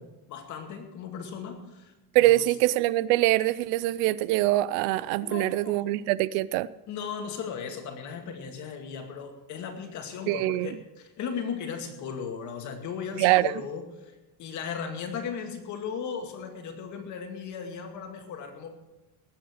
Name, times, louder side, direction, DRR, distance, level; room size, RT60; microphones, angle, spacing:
voice 1, 0.0-1.9 2.2-2.4 5.2-5.9 6.9-18.7, left 6 dB, 40° left, 2.2 m, -37 dB
voice 2, 2.1-6.7 10.3-10.7 13.2-13.5, right 17 dB, 70° right, 0.6 m, -24 dB
19.5 x 8.0 x 6.4 m
cardioid pair, 170°, 44 cm